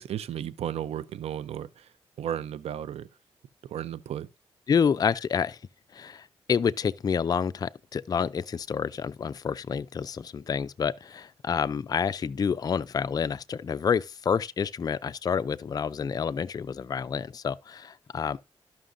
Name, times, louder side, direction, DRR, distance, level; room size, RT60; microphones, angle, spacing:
voice 1, 0.0-1.9 2.2-3.1 3.7-4.3, right 10 dB, 80° right, 0.5 m, -34 dB
voice 2, 4.7-5.6 5.9-18.4, left 6 dB, 40° left, 0.3 m, -28 dB
13.0 x 5.8 x 2.5 m
cardioid pair, 80°, 10 cm